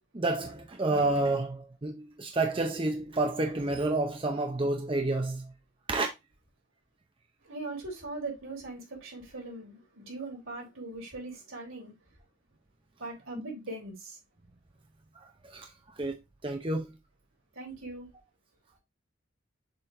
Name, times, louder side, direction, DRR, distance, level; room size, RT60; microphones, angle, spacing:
voice 1, 0.1-5.4 5.9-6.1 15.5-15.7 16.0-16.1 16.4-16.9, right 2 dB, 25° right, 0.6 m, -29 dB
voice 2, 7.4-11.9 13.0-14.2 17.6-18.1, right 2 dB, 75° right, 3.6 m, -40 dB
6.7 x 3.7 x 3.7 m
head